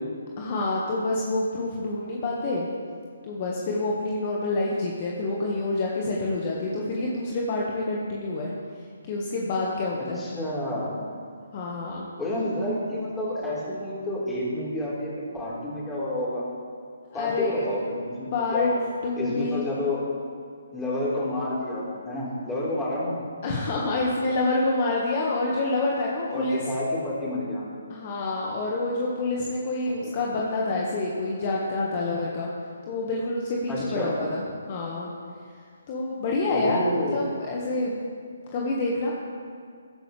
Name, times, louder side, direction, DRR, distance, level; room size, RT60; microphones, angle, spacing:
voice 1, 0.4-2.7 3.2-8.5 9.1-10.2 11.5-12.1 17.1-17.6 18.3-18.7 19.0-19.6 23.4-26.7 27.9-32.5 32.9-35.1 35.9-38.0 38.5-39.1, left 2 dB, 35° left, -3 dB, 1.7 m, -27 dB
voice 2, 10.0-10.9 12.2-16.4 17.1-18.8 19.2-20.0 20.7-23.2 26.3-27.6 30.0-30.2 33.7-34.1 36.5-37.2, left 1 dB, 10° left, -8 dB, 4.4 m, -29 dB
21.5 x 11.5 x 3.5 m, 2.1 s
figure-of-eight pair, 140°, 0 cm